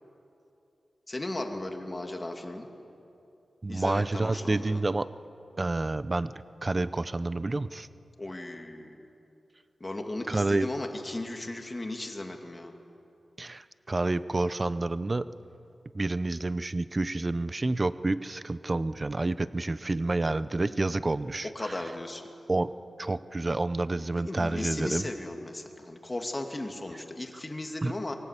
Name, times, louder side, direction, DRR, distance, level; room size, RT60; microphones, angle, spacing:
voice 1, 1.1-2.7 3.7-4.8 8.2-9.1 9.8-12.7 21.5-22.2 24.1-28.1, left 2 dB, 30° left, 3 dB, 2.4 m, -36 dB
voice 2, 3.6-5.1 5.6-6.3 6.6-7.9 10.3-10.7 13.4-15.2 15.9-21.7 22.5-22.7 23.0-25.1 27.8-28.1, right 2 dB, 35° right, 15 dB, 0.7 m, -29 dB
23.5 x 17.5 x 8.3 m, 2.7 s
cardioid pair, 65°, 0 cm